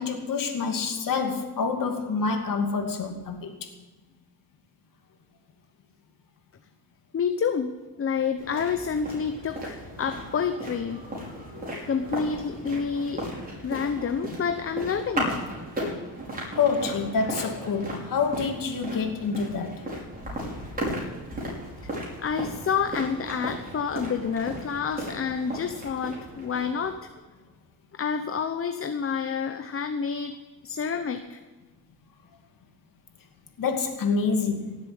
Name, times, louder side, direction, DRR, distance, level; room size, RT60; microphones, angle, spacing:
voice 1, 0.0-3.7 16.6-19.9 33.6-34.8, left 5 dB, 55° left, 2.6 m, -27 dB
voice 2, 7.1-11.0 11.9-13.3 13.6-15.5 21.8-21.9 22.2-27.1 27.9-30.4 30.6-31.4, left 6 dB, 35° left, 0.9 m, -29 dB
sound 1, 8.4-26.9, equal, 20° right, 5.8 m, -36 dB
17.5 x 7.7 x 8.6 m
cardioid pair, 105°, 39 cm